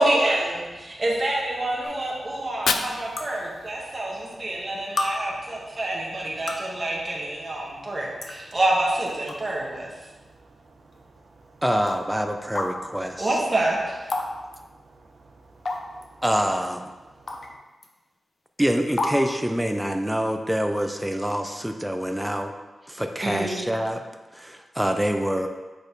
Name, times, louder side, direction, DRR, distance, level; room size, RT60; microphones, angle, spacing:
voice 1, 0.0-9.9 13.2-14.0 23.2-23.6, right 1 dB, 30° right, -4 dB, 1.7 m, -26 dB
sound 1, 1.8-1.9 3.2-3.3 4.3-4.4 5.0-5.1 6.2-6.7 7.7-7.8 8.2-8.3 9.1-9.4 9.9-10.0 10.9-11.0 11.9-12.0 12.6-12.7 14.1-14.3 14.5-14.6 15.7-16.0 17.3-17.5 17.8-17.9 19.0-19.2, left 2 dB, 50° left, 0.8 m, -29 dB
Fire, 2.3-4.4, left 5 dB, 85° left, 0.4 m, -31 dB
voice 2, 3.8-5.7 6.4-6.8 7.4-8.1 8.5-8.6 9.4-9.5 10.0-11.6 14.2-16.2 17.1-17.6, right 3 dB, 60° right, 2 dB, 0.9 m, -54 dB
voice 3, 11.6-13.4 16.2-16.9 18.6-22.5 22.9-24.0 24.3-25.5, equal, 5° right, 5 dB, 0.5 m, -26 dB
6.4 x 5.1 x 4.0 m, 1.2 s
wide cardioid pair, 95°, 0 cm